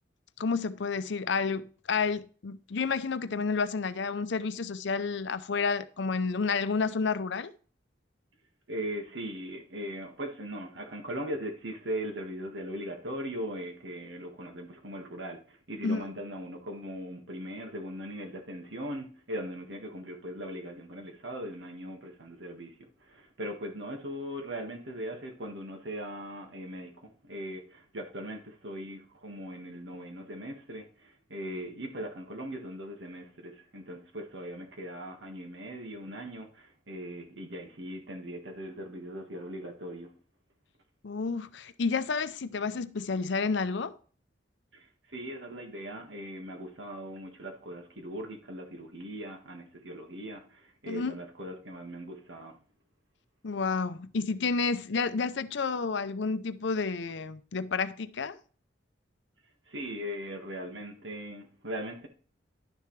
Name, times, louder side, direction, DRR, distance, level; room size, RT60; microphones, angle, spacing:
voice 1, 0.4-7.5 15.8-16.0 41.0-44.0 50.9-51.2 53.4-58.4, left 4 dB, 70° left, 0.6 m, -30 dB
voice 2, 8.7-40.1 44.7-52.6 59.7-62.1, equal, 70° right, 1.7 m, -39 dB
11.0 x 6.7 x 3.2 m
head